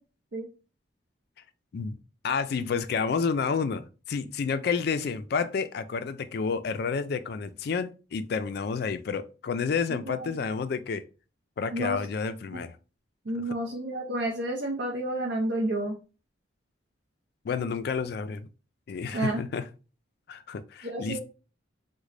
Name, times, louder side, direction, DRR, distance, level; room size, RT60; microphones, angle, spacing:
voice 1, 2.2-11.0 11.6-12.8 17.4-18.5 18.9-19.6 20.3-21.2, left 5 dB, 50° left, 0.3 m, -30 dB
voice 2, 9.9-10.3 11.7-12.0 12.5-12.6 13.3-16.0 19.1-19.4 20.8-21.2, right 1 dB, 60° right, 0.5 m, -30 dB
3.7 x 2.1 x 3.2 m
head